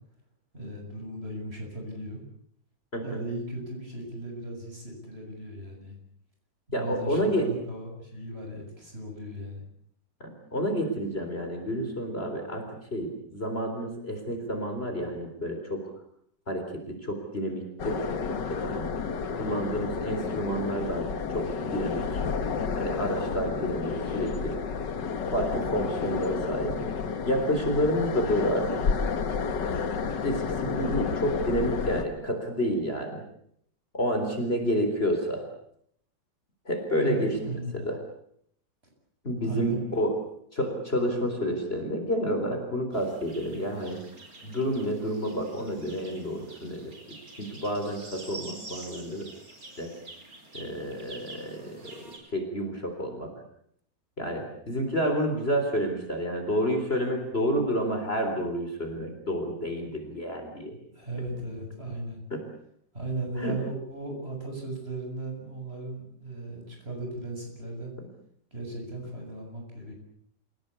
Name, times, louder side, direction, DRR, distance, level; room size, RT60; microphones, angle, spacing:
voice 1, 0.5-2.2 2.9-6.0 6.7-9.6 37.0-37.8 39.4-40.1 60.9-62.2 62.9-67.9 68.5-69.9, right 2 dB, 35° right, 2 dB, 7.5 m, -36 dB
voice 2, 2.9-3.2 6.7-7.5 10.2-15.9 16.5-18.9 19.4-21.1 21.3-22.1 22.8-24.6 25.3-26.8 27.3-28.8 30.2-33.2 33.9-35.5 36.7-37.4 37.8-38.0 39.2-40.1 40.5-44.0 44.4-47.0 47.4-49.3 49.8-49.9 50.5-51.8 52.3-53.3 54.2-60.8 62.3-62.4 63.4-63.6, equal, 35° left, 5 dB, 4.1 m, -29 dB
sound 1, 17.8-32.0, left 5 dB, 75° left, 2.2 m, -31 dB
sound 2, 42.9-52.2, right 2 dB, 50° right, 5.0 m, -47 dB
28.0 x 17.0 x 8.3 m, 0.69 s
omnidirectional pair, 1.9 m